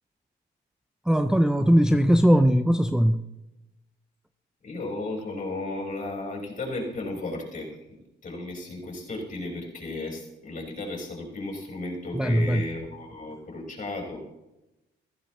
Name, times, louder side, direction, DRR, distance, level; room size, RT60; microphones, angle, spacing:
voice 1, 1.1-3.2 12.1-12.6, equal, 5° right, 8 dB, 0.5 m, -20 dB
voice 2, 4.6-7.7 8.2-14.2, left 2 dB, 40° left, -1 dB, 5.1 m, -34 dB
15.0 x 15.0 x 3.2 m, 0.95 s
cardioid pair, 90°, 20 cm